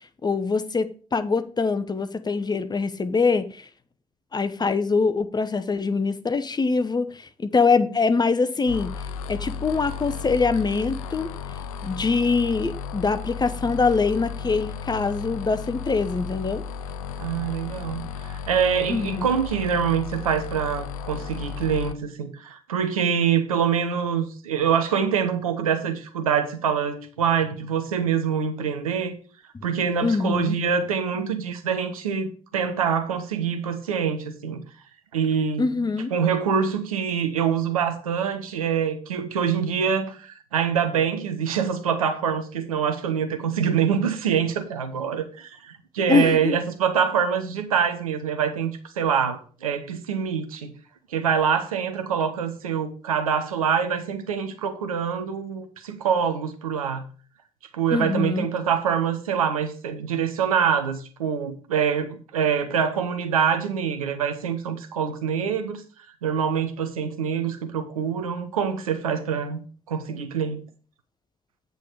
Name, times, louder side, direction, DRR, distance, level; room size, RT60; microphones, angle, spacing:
voice 1, 0.2-3.7 4.3-8.9 9.3-16.6 18.9-19.3 29.5-29.7 30.0-30.6 35.6-36.1 46.1-46.6 57.9-58.5, left 4 dB, 25° left, 0.9 m, -24 dB
sound 1, 8.7-21.9, left 6 dB, 80° left, 0.5 m, -34 dB
voice 2, 17.2-29.1 29.6-34.6 35.1-35.7 36.1-50.7 51.1-57.0 57.7-65.8 66.2-69.6 69.9-70.6, right 7 dB, 85° right, 0.9 m, -25 dB
8.1 x 4.0 x 6.6 m
figure-of-eight pair, 45°, 18 cm